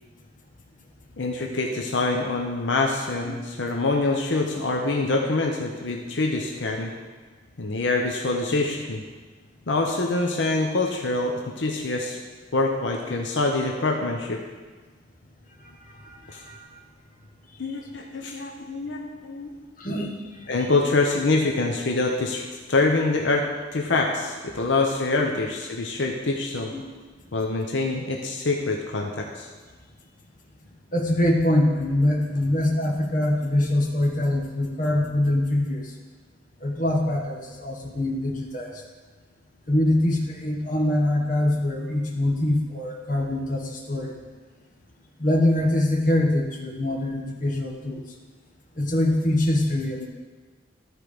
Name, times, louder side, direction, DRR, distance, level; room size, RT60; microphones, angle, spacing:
voice 1, 1.2-6.9 7.6-9.0 9.7-12.2 12.5-14.4 16.3-16.4 17.6-19.5 20.5-23.5 23.7-26.7 27.3-29.5, left 3 dB, 80° left, 1 dB, 0.8 m, -25 dB
voice 2, 16.0-16.7 19.8-20.2 20.4-20.5 26.7-26.8 30.9-35.8 36.6-38.8 39.7-44.1 45.2-48.0 48.8-50.1, left 1 dB, 45° left, 0 dB, 1.3 m, -24 dB
13.0 x 4.6 x 5.0 m, 1.4 s
head